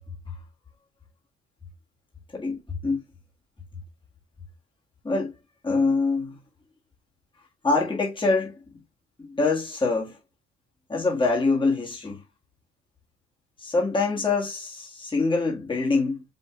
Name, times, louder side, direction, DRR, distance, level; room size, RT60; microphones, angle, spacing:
voice 1, 2.3-3.0 5.0-5.3 5.6-6.4 7.6-8.5 9.2-10.2 10.9-12.2 13.6-16.2, left 3 dB, 15° left, 1.6 m, -24 dB
5.2 x 2.6 x 3.7 m
cardioid pair, 90°, 30 cm